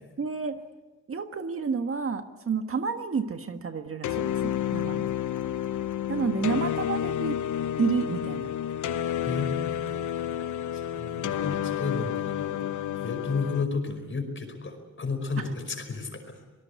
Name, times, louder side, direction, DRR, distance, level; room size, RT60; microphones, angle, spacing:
voice 1, 0.2-0.6 1.1-5.1 6.1-7.4 7.8-8.5, right 5 dB, 45° right, 7 dB, 1.6 m, -30 dB
sound 1, 4.0-13.6, left 10 dB, 75° left, 0.9 m, -30 dB
voice 2, 9.2-9.9 10.7-12.7 12.9-16.4, left 4 dB, 40° left, 6 dB, 5.2 m, -33 dB
25.5 x 19.5 x 8.2 m, 1.2 s
cardioid pair, 90°, 31 cm